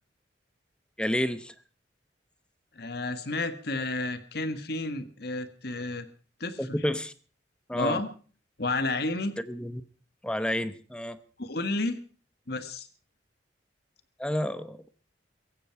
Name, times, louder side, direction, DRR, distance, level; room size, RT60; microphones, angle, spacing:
voice 1, 1.0-1.5 6.6-7.1 7.7-8.0 9.4-9.8 10.2-11.2 14.2-14.8, equal, 5° left, 13 dB, 0.9 m, -30 dB
voice 2, 2.7-6.1 6.4-6.8 7.7-8.1 8.6-9.3 11.4-12.0 12.5-12.9, left 2 dB, 60° left, 10 dB, 1.7 m, -31 dB
17.0 x 15.5 x 4.7 m, 0.39 s
head